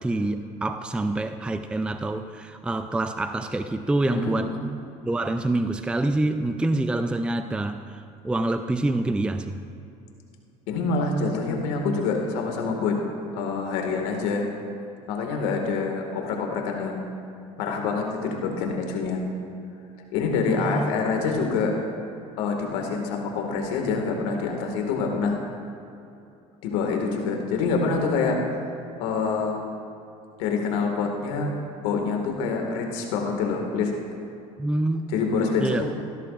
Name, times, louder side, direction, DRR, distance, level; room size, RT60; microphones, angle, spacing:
voice 1, 0.0-4.5 5.1-9.6 20.5-20.9 34.6-35.1 35.6-35.9, right 2 dB, 5° right, 9 dB, 0.4 m, -26 dB
voice 2, 4.1-4.6 10.7-13.0 13.3-14.4 15.1-17.1 17.6-19.2 20.1-21.7 22.4-25.4 26.6-28.4 29.0-29.6 30.4-31.5 31.8-33.9 35.1-35.9, left 4 dB, 85° left, 2 dB, 2.0 m, -26 dB
17.0 x 12.5 x 2.5 m, 2.7 s
supercardioid pair, 95°, 16 cm